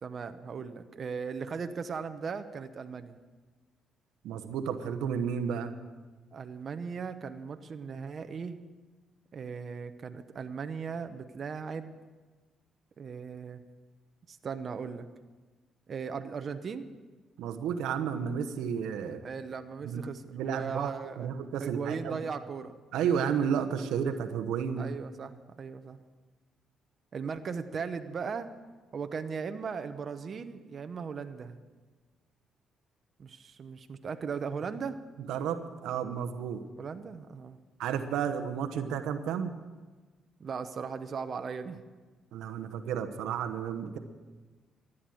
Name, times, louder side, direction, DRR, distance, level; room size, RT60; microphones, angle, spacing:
voice 1, 0.0-3.2 6.3-8.6 9.3-12.0 13.0-13.6 14.3-15.1 15.9-16.9 19.2-21.3 21.6-22.8 24.8-26.0 27.1-28.5 28.9-31.6 33.2-35.0 36.8-37.6 40.4-41.8, right 6 dB, 50° right, 8 dB, 0.9 m, -38 dB
voice 2, 4.2-5.7 17.4-19.2 19.8-20.9 21.2-22.2 22.9-24.9 35.2-36.6 37.8-39.5 42.3-44.0, right 7 dB, 90° right, 8 dB, 1.0 m, -32 dB
14.5 x 10.0 x 7.8 m, 1.3 s
cardioid pair, 90°, 0 cm